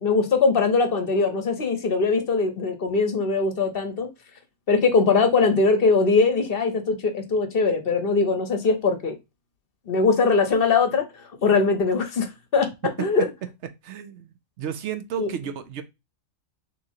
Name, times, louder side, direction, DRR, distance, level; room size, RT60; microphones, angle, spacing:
voice 1, 0.0-4.1 4.7-9.2 9.9-11.1 11.4-12.7 13.0-13.3 15.2-15.3, left 4 dB, 50° left, 0.9 m, -21 dB
voice 2, 13.8-14.3 14.6-15.8, right 9 dB, 65° right, 0.8 m, -32 dB
6.1 x 3.1 x 2.7 m
omnidirectional pair, 1.4 m